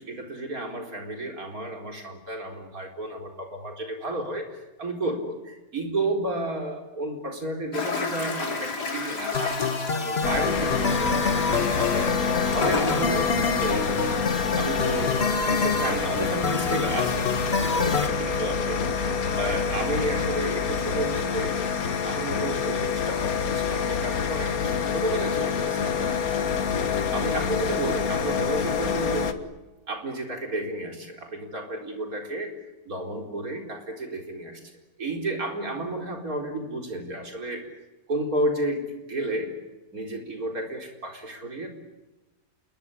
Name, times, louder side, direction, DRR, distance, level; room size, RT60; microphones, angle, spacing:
voice 1, 0.0-11.3 11.9-14.2 14.6-18.8 19.3-21.6 22.0-26.1 27.1-29.4 29.9-32.6 32.9-34.6 35.0-37.6 38.1-39.5 39.9-41.7, right 1 dB, 60° right, 2 dB, 4.7 m, -32 dB
Toilet flush, 7.7-13.2, left 4 dB, 85° left, 3.6 m, -33 dB
sound 1, 9.3-18.1, left 4 dB, 40° left, 1.9 m, -28 dB
sound 2, 10.2-29.3, left 6 dB, 60° left, 1.9 m, -27 dB
27.5 x 22.0 x 9.9 m, 1.1 s
omnidirectional pair, 1.7 m